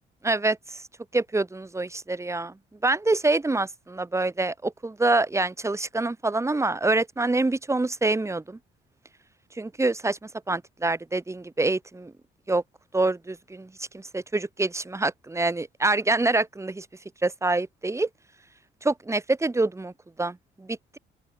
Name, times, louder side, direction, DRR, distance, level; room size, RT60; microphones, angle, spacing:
voice 1, 0.2-0.8 1.1-2.5 2.8-8.6 9.6-10.2 10.5-12.1 12.5-12.6 12.9-16.8 17.2-18.1 18.8-19.9 20.2-21.0, right 2 dB, 15° right, 1.3 m, -26 dB
open air
cardioid pair, 90°, 20 cm